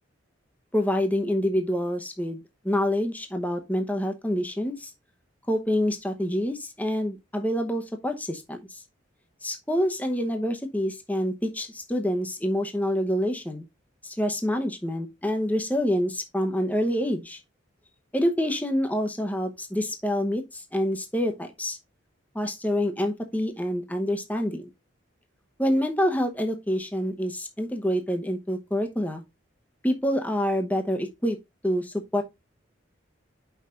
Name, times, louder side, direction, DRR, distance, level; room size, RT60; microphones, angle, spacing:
voice 1, 0.7-4.9 5.5-8.8 9.4-13.6 14.0-17.4 18.1-21.8 22.3-24.7 25.6-29.2 29.8-31.4 31.6-32.2, equal, 10° left, 0.8 m, -27 dB
5.7 x 5.5 x 3.7 m
head